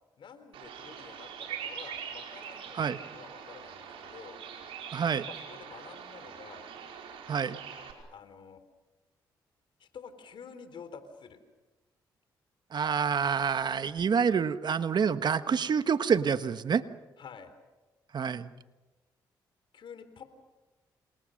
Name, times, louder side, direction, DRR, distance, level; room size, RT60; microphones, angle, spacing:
voice 1, 0.2-4.4 5.2-6.7 8.1-8.6 9.8-11.4 17.2-17.5 19.7-20.2, left 6 dB, 65° left, 10 dB, 3.8 m, -49 dB
Bird vocalization bird call bird song, 0.5-7.9, right 7 dB, 80° right, 5.3 m, -43 dB
voice 2, 4.9-5.3 7.3-7.6 12.7-16.8 18.1-18.5, right 6 dB, 50° right, 12 dB, 1.3 m, -27 dB
28.5 x 28.0 x 6.6 m, 1.2 s
supercardioid pair, 60°, 9 cm